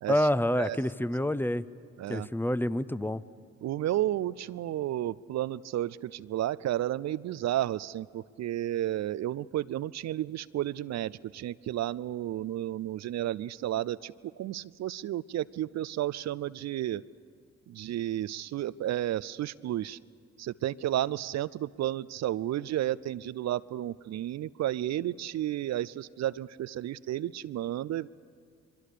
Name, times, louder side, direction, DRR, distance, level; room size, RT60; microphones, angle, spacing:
voice 1, 0.1-1.6 2.1-3.2, left 1 dB, 5° left, 17 dB, 0.7 m, -27 dB
voice 2, 3.6-14.1 14.4-17.0 17.7-20.0 20.4-28.1, right 13 dB, 55° right, 18 dB, 0.5 m, -32 dB
24.5 x 23.0 x 6.7 m, 2.1 s
hypercardioid pair, 45°, 33 cm